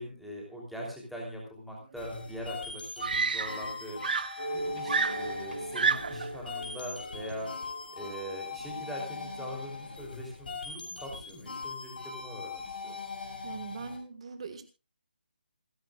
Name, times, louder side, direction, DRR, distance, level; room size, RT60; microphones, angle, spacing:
voice 1, 0.0-4.0 4.5-7.5 7.9-12.9, equal, ahead, -3 dB, 3.2 m, -42 dB
sound 1, 2.0-14.0, left 4 dB, 60° left, 7.1 m, -41 dB
Screaming, 2.2-2.3 3.0-3.8 4.0-6.3 7.3-7.6, right 5 dB, 55° right, 0.7 m, -30 dB
sound 2, 4.4-9.3, right 1 dB, 70° right, 4.5 m, -41 dB
voice 2, 13.4-14.6, right 5 dB, 35° right, 9 dB, 1.6 m, -41 dB
27.5 x 10.5 x 2.4 m, 0.30 s
hypercardioid pair, 170°, 6 cm